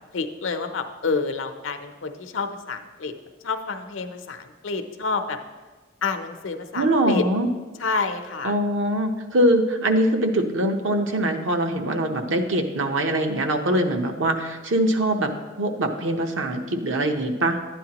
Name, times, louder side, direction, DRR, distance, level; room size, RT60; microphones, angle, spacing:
voice 1, 0.1-3.1 3.4-5.4 6.0-7.2 7.8-8.5, left 4 dB, 80° left, 7 dB, 0.7 m, -28 dB
voice 2, 6.7-7.5 8.4-15.3 15.6-17.6, right 1 dB, 75° right, 4 dB, 0.8 m, -23 dB
11.5 x 9.1 x 2.9 m, 1.3 s
head